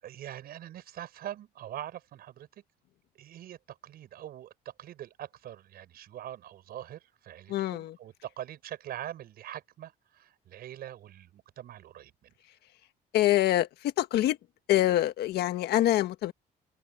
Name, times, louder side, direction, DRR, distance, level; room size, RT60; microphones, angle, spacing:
voice 1, 0.0-2.5 3.1-12.3, right 12 dB, 65° right, 5.9 m, -43 dB
voice 2, 7.5-8.0 13.1-14.4 14.7-16.3, left 14 dB, 75° left, 1.7 m, -25 dB
open air
cardioid pair, 110°, 17 cm